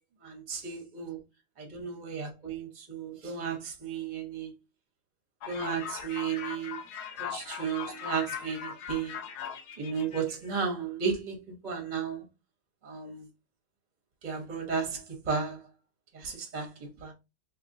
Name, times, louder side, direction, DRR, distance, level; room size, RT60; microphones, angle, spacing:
voice 1, 0.2-1.2 1.6-4.5 5.4-6.8 7.2-9.2 9.8-12.2 12.8-13.3 14.2-15.7 16.1-17.1, right 6 dB, 35° right, 0.9 m, -34 dB
sound 1, 5.4-10.5, left 8 dB, 85° left, 1.2 m, -40 dB
3.6 x 2.9 x 2.6 m
omnidirectional pair, 1.7 m